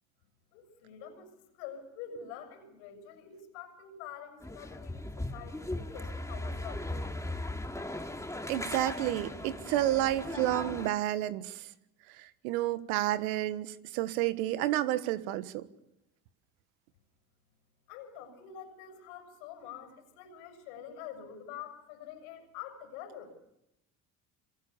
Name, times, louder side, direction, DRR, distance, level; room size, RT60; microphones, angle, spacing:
voice 1, 0.5-6.9 17.9-23.3, left 8 dB, 80° left, 6.8 m, -46 dB
sound 1, 4.4-10.9, left 1 dB, 5° left, 2.6 m, -38 dB
voice 2, 8.5-11.7 12.2-15.6, right 14 dB, 80° right, 1.5 m, -30 dB
27.0 x 26.0 x 7.1 m
hypercardioid pair, 65°, 43 cm